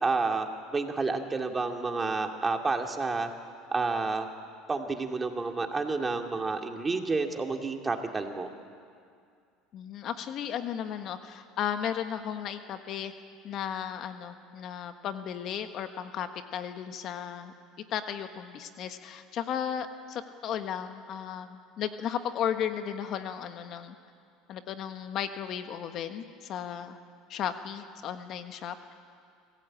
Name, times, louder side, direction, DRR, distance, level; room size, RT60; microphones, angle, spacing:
voice 1, 0.0-3.3 3.7-4.3 4.7-8.5, right 3 dB, 20° right, 4 dB, 2.3 m, -30 dB
voice 2, 9.7-13.1 13.4-17.5 17.9-23.9 24.5-27.0 27.3-28.9, left 9 dB, 50° left, 8 dB, 1.4 m, -35 dB
25.5 x 16.5 x 8.8 m, 2.3 s
supercardioid pair, 95°, 0 cm